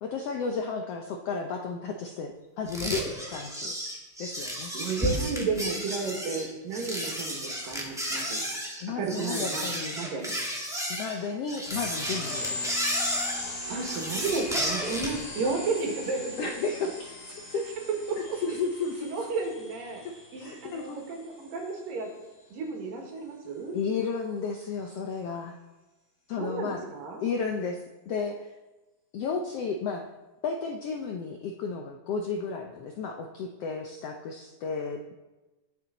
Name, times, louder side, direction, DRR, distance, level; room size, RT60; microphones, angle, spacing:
voice 1, 0.0-3.7 4.2-4.7 8.8-10.0 10.9-12.8 16.4-16.9 17.3-17.6 18.2-19.3 20.0-21.0 23.7-25.6 26.3-26.8 27.2-28.5 29.1-30.1 30.4-35.2, left 5 dB, 80° left, 3 dB, 1.4 m, -33 dB
sound 1, 2.7-15.2, equal, ahead, 1.2 m, -33 dB
voice 2, 4.7-8.4 9.0-10.4 13.7-16.4 17.8-18.2 19.0-20.0 20.3-22.1 22.5-23.8 26.4-27.2, right 4 dB, 90° right, 1 dB, 3.7 m, -32 dB
sound 2, 11.7-21.8, left 2 dB, 40° left, 3.7 m, -38 dB
21.0 x 7.0 x 4.1 m, 1.1 s
omnidirectional pair, 3.8 m